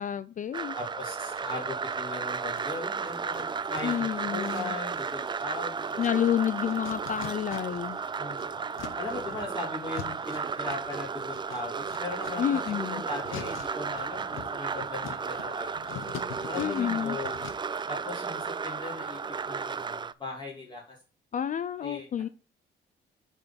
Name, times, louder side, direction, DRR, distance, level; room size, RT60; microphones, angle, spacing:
voice 1, 0.0-0.8 3.8-4.7 6.0-8.0 12.4-13.0 16.6-17.2 21.3-22.3, left 9 dB, 40° left, 0.4 m, -29 dB
sound 1, 0.5-20.1, right 5 dB, 25° right, 0.4 m, -34 dB
voice 2, 0.7-6.0 8.2-8.4 9.0-15.9 16.5-17.4 17.9-21.0 21.8-22.1, left 3 dB, 25° left, 2.9 m, -39 dB
sound 2, 1.3-2.1 2.5-8.0 8.2-17.8, left 8 dB, 85° left, 1.0 m, -46 dB
8.7 x 4.6 x 4.1 m
cardioid pair, 90°, 20 cm